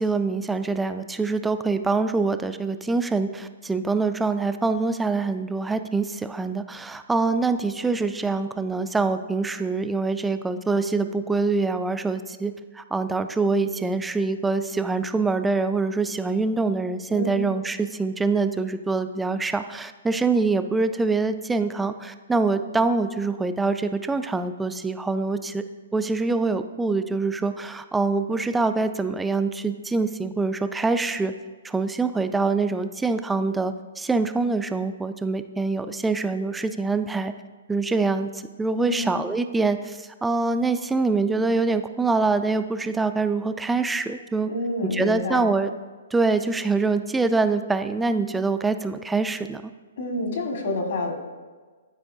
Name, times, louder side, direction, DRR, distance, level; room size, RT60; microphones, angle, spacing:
voice 1, 0.0-25.6 25.9-31.3 31.6-37.3 37.7-38.3 38.6-44.5 44.9-45.7 46.1-49.6, right 3 dB, 5° right, 10 dB, 0.3 m, -25 dB
voice 2, 38.8-39.1 44.5-45.5 50.0-51.1, left 2 dB, 65° left, 2 dB, 1.6 m, -28 dB
12.0 x 4.5 x 2.6 m, 1.4 s
hypercardioid pair, 145°, 0 cm